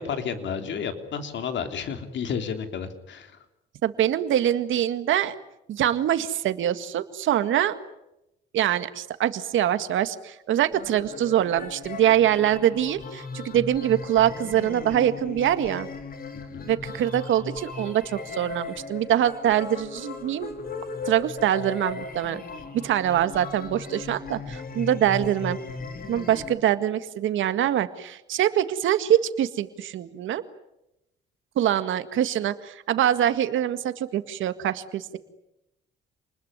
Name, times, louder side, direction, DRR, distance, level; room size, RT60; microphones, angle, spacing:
voice 1, 0.0-3.4 16.5-16.7, left 6 dB, 65° left, 7 dB, 3.3 m, -31 dB
voice 2, 3.8-5.4 5.7-7.7 8.5-15.9 16.7-20.5 21.1-22.4 22.7-25.6 26.1-30.4 31.6-35.2, right 11 dB, 75° right, 11 dB, 1.9 m, -24 dB
sound 1, 10.7-26.6, left 4 dB, 45° left, 3.3 m, -37 dB
28.5 x 20.5 x 9.8 m, 0.89 s
cardioid pair, 90°, 20 cm